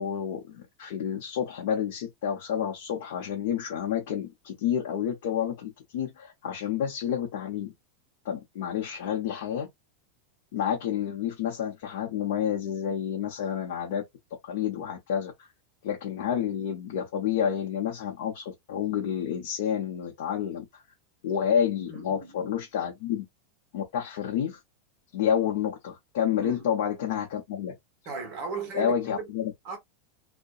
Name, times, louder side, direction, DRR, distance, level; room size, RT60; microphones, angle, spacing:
voice 1, 0.0-7.7 8.2-9.7 10.5-14.0 14.4-15.3 15.8-20.7 21.2-23.2 23.7-24.6 25.1-27.7 28.7-29.5, left 8 dB, 60° left, 0.8 m, -29 dB
voice 2, 21.8-22.9 26.4-26.7 28.0-29.3 29.6-29.8, right 5 dB, 35° right, 1.2 m, -37 dB
2.7 x 2.2 x 2.3 m
supercardioid pair, 170°, 0 cm